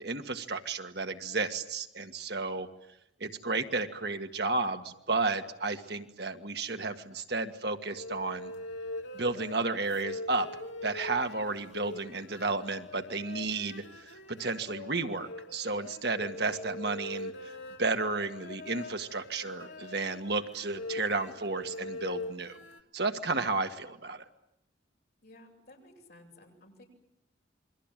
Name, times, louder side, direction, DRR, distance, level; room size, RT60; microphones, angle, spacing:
voice 1, 0.0-2.7 3.2-8.5 9.1-10.5 10.8-22.6 22.9-24.2, right 3 dB, 55° right, 7 dB, 1.7 m, -32 dB
sound 1, 7.9-22.8, left 1 dB, 75° left, 2.6 m, -43 dB
voice 2, 25.2-26.8, left 1 dB, 55° left, 2 dB, 7.8 m, -55 dB
28.0 x 23.5 x 9.1 m, 0.81 s
head